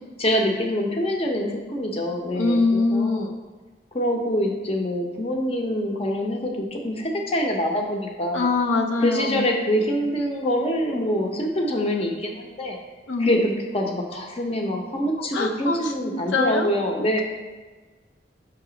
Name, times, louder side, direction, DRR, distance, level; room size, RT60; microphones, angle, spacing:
voice 1, 0.2-3.3 3.9-8.5 9.0-12.8 13.2-17.2, equal, 35° left, 1 dB, 0.7 m, -25 dB
voice 2, 2.3-3.4 8.3-9.5 13.1-13.4 15.3-16.7, left 3 dB, 85° left, 3 dB, 0.5 m, -23 dB
5.9 x 3.5 x 5.0 m, 1.3 s
head